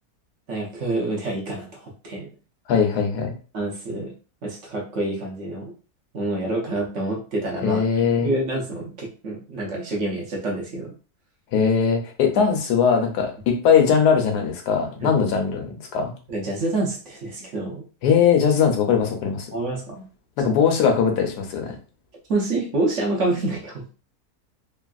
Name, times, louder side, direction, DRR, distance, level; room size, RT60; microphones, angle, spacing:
voice 1, 0.5-2.3 3.5-4.1 4.4-5.7 6.1-7.8 8.2-10.9 15.0-15.2 16.3-17.8 19.5-20.0 20.4-20.5 22.3-23.8, right 2 dB, 55° right, -1 dB, 1.0 m, -27 dB
voice 2, 2.7-3.3 7.6-8.3 11.5-16.1 18.0-19.5 20.4-21.7, left 6 dB, 85° left, 3 dB, 1.3 m, -20 dB
3.3 x 2.5 x 2.3 m, 0.36 s
omnidirectional pair, 1.7 m